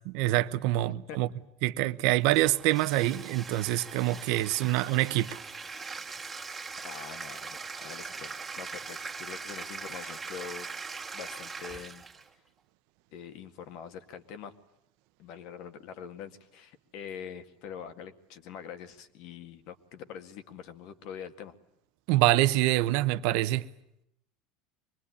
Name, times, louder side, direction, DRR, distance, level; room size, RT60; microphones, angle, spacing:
voice 1, 0.1-1.3 1.6-5.4 22.1-23.7, right 16 dB, 65° right, 1.0 m, -25 dB
Bathtub (filling or washing), 2.3-12.3, right 4 dB, 10° right, 2.3 m, -41 dB
voice 2, 6.8-10.7 11.1-12.0 13.1-14.5 15.2-21.5, left 7 dB, 60° left, 2.0 m, -44 dB
24.5 x 20.5 x 9.9 m
supercardioid pair, 140°, 0 cm